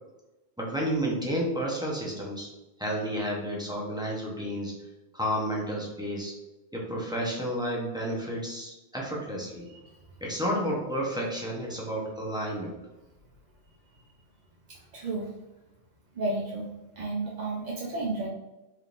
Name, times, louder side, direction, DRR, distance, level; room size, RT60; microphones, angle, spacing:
voice 1, 0.6-2.5 2.8-4.9 5.1-6.4 6.7-9.7 10.2-12.8, equal, 5° right, -3 dB, 0.5 m, -31 dB
voice 2, 14.7-15.3 16.1-16.7 17.0-18.3, right 2 dB, 50° right, -3 dB, 0.5 m, -32 dB
4.4 x 3.5 x 2.4 m, 1.0 s
omnidirectional pair, 1.3 m